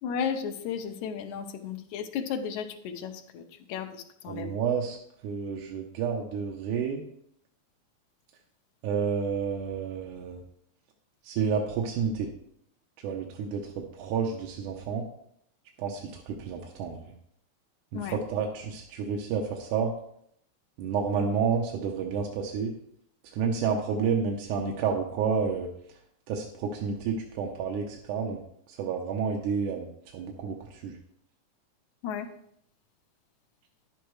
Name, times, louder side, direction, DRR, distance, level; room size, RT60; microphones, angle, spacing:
voice 1, 0.0-3.4 3.7-4.5 17.9-18.2 32.0-32.3, left 7 dB, 90° left, 5 dB, 2.2 m, -34 dB
voice 2, 4.3-5.0 5.2-7.0 8.8-10.4 11.2-12.3 13.0-15.0 15.8-17.1 17.9-19.9 20.8-22.7 23.3-25.7 26.3-28.4 28.7-29.9 30.1-31.0, right 6 dB, 85° right, 0 dB, 2.3 m, -30 dB
10.5 x 8.4 x 3.1 m, 0.69 s
omnidirectional pair, 3.4 m